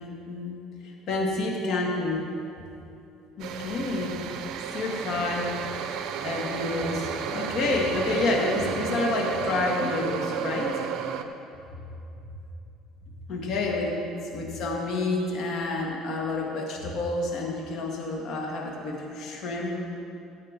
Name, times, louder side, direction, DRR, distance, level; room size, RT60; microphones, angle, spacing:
voice 1, 0.0-2.3 3.4-4.2 4.7-5.5 6.2-10.7 13.3-14.0 14.3-19.8, left 2 dB, 55° left, -1 dB, 2.2 m, -29 dB
sound 1, 3.4-11.2, right 7 dB, 65° right, 0.7 m, -32 dB
16.5 x 8.5 x 3.7 m, 2.7 s
cardioid pair, 120°, 0 cm